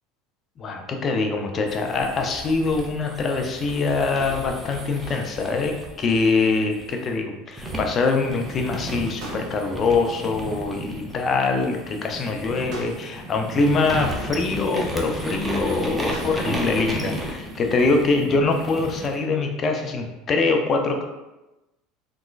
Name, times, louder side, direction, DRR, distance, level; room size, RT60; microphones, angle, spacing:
voice 1, 0.6-21.0, left 3 dB, 35° left, 3 dB, 0.6 m, -23 dB
sound 1, 1.7-7.1 7.6-19.2, right 1 dB, 10° right, 0.7 m, -34 dB
sound 2, 5.0-5.9 9.2-10.0 12.7-13.4 16.1-16.8, right 2 dB, 55° right, 1.3 m, -42 dB
3.6 x 3.0 x 2.4 m, 1.0 s
hypercardioid pair, 95°, 0 cm